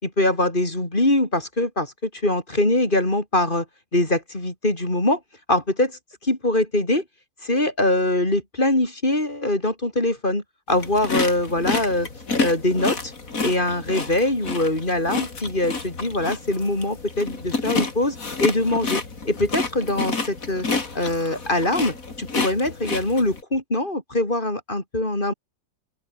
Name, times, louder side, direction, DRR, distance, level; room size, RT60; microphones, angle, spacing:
voice 1, 0.0-3.6 3.9-5.2 5.5-7.0 7.4-12.1 12.4-13.1 13.4-20.7 20.9-25.3, left 1 dB, 25° left, 4.7 m, -23 dB
sound 1, 10.7-23.4, left 4 dB, 45° left, 3.4 m, -29 dB
open air
omnidirectional pair, 2.0 m